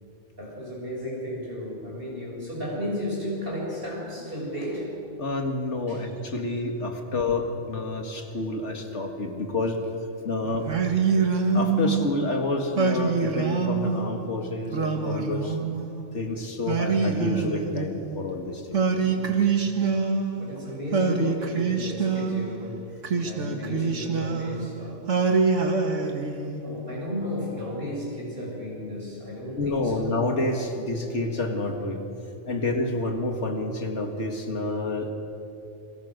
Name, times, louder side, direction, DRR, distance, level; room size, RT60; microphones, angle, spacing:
voice 1, 0.4-4.9 5.9-6.0 6.5-6.6 10.4-10.6 19.0-19.5 20.3-22.8 23.2-25.1 26.6-30.0 32.6-32.7, left 1 dB, 45° right, -3 dB, 7.5 m, -34 dB
voice 2, 5.2-9.8 10.2-10.7 11.5-15.6 16.1-18.8 26.0-26.1 29.6-32.0 32.5-35.1, left 2 dB, 65° left, 4 dB, 2.4 m, -29 dB
Singing, 10.7-12.1 12.8-14.1 14.7-16.0 16.7-18.2 18.7-20.5 20.9-22.5 23.0-24.7 25.1-26.7, right 5 dB, 75° right, 2.1 m, -25 dB
29.5 x 22.5 x 6.6 m, 2.8 s
omnidirectional pair, 1.3 m